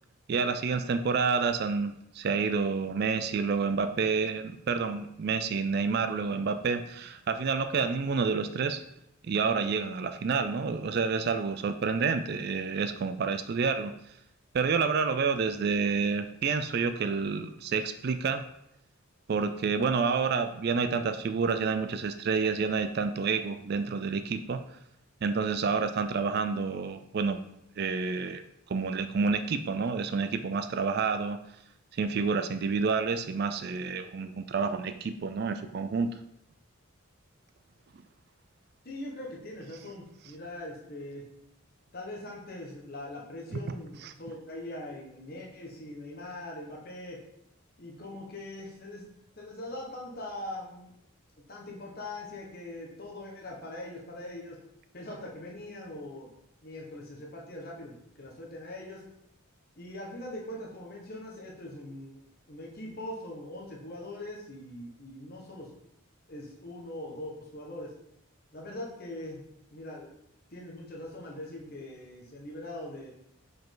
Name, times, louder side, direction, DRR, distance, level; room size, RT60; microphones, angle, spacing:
voice 1, 0.3-8.8 9.2-13.9 14.5-18.4 19.3-24.6 25.2-27.4 27.8-28.4 28.7-31.4 31.9-36.1 43.5-43.6 44.0-44.1, right 5 dB, 45° right, 9 dB, 0.3 m, -29 dB
voice 2, 38.8-41.3 41.9-47.2 47.8-49.1 49.4-50.9 51.5-54.6 54.9-56.3 56.6-59.0 59.8-62.2 62.5-65.7 66.3-67.9 68.5-69.4 69.7-70.2 70.5-73.1, left 1 dB, 45° left, -2 dB, 1.3 m, -41 dB
5.1 x 4.8 x 3.8 m, 0.78 s
head